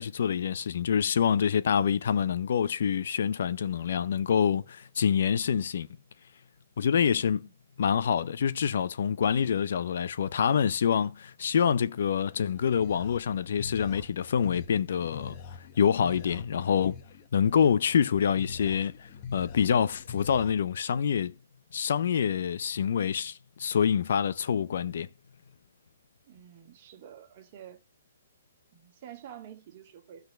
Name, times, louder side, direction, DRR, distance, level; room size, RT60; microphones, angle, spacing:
voice 1, 0.0-5.9 6.8-7.5 7.8-15.4 15.8-17.0 17.3-21.3 21.7-25.1, left 7 dB, 60° left, 0.6 m, -26 dB
voice 2, 7.1-7.5 26.3-27.8 28.7-30.3, right 10 dB, 35° right, 2.0 m, -49 dB
sound 1, 12.3-20.5, left 5 dB, 30° left, 1.1 m, -44 dB
11.5 x 4.1 x 6.6 m
hypercardioid pair, 160°, 0 cm